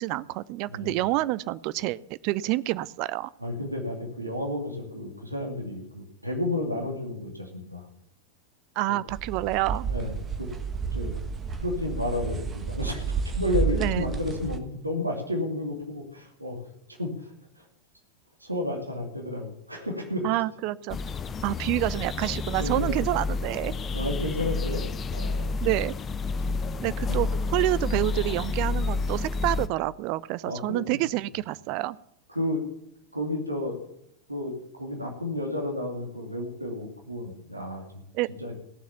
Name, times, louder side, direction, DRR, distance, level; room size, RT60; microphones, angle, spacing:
voice 1, 0.0-3.3 8.8-9.9 13.7-14.1 20.2-21.0 21.4-23.7 25.6-25.9 26.8-32.0 38.1-38.3, right 17 dB, 45° right, 18 dB, 0.5 m, -28 dB
voice 2, 0.7-1.0 3.4-7.9 9.9-10.1 10.4-10.5 10.9-11.1 11.6-16.6 17.0-17.3 18.4-20.3 22.6-23.0 23.9-24.8 25.1-25.5 26.5-26.6 27.1-27.2 30.4-31.0 32.3-32.6 33.1-33.8 34.3-38.0 38.4-38.5, left 1 dB, 85° right, 2 dB, 2.7 m, -32 dB
sound 1, 9.1-14.6, right 5 dB, 20° right, 1.4 m, -31 dB
sound 2, 20.9-29.7, left 3 dB, 20° left, 0.7 m, -29 dB
18.0 x 7.3 x 7.0 m, 0.77 s
figure-of-eight pair, 90°, 0 cm